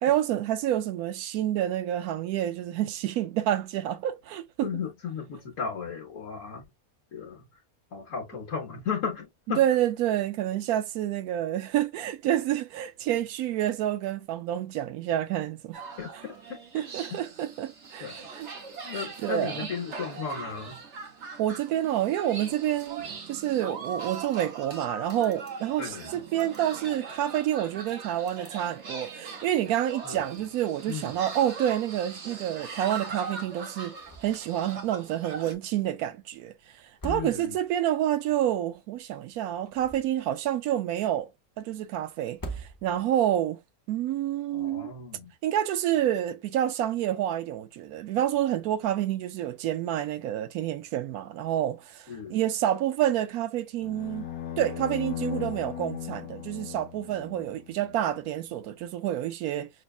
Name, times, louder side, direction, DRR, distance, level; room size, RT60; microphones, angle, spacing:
voice 1, 0.0-4.7 9.6-15.8 16.7-18.5 18.9-19.7 21.4-33.9 34.2-36.5 37.0-41.3 41.6-43.6 43.9-44.9 45.4-54.3 54.6-59.7, right 11 dB, 85° right, 1.1 m, -28 dB
voice 2, 4.6-6.6 7.1-7.4 7.9-9.6 16.0-16.6 17.1-17.2 18.0-18.2 18.8-20.8 23.0-23.1 25.8-26.1 30.0-30.2 30.9-31.1 37.1-37.6 44.5-45.3 52.1-52.4, left 6 dB, 65° left, 1.4 m, -35 dB
sound 1, 15.7-35.5, right 5 dB, 55° right, 1.1 m, -41 dB
sound 2, 34.0-34.5 34.8-34.9 36.8-37.8 39.5-40.4 42.3-43.2, right 3 dB, 25° left, 0.4 m, -41 dB
sound 3, 53.8-58.1, left 10 dB, 80° left, 1.2 m, -37 dB
6.2 x 2.3 x 2.3 m
omnidirectional pair, 1.5 m